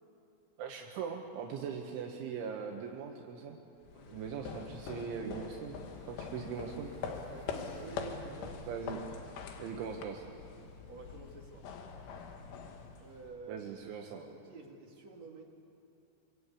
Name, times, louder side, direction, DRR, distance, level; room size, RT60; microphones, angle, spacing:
voice 1, 0.6-3.6 4.1-5.8 6.1-6.9 8.7-9.1 9.6-10.2 13.5-14.2, right 6 dB, 75° right, 1 dB, 3.7 m, -40 dB
sound 1, 3.8-13.5, left 5 dB, 80° left, 4.3 m, -44 dB
voice 2, 3.9-4.3 7.3-8.7 10.9-11.8 13.0-13.6 14.0-15.4, right 4 dB, 45° right, 1 dB, 2.7 m, -50 dB
Engine, 5.3-10.6, left 1 dB, 55° left, 8.6 m, -61 dB
24.5 x 24.5 x 8.4 m, 2.7 s
omnidirectional pair, 5.5 m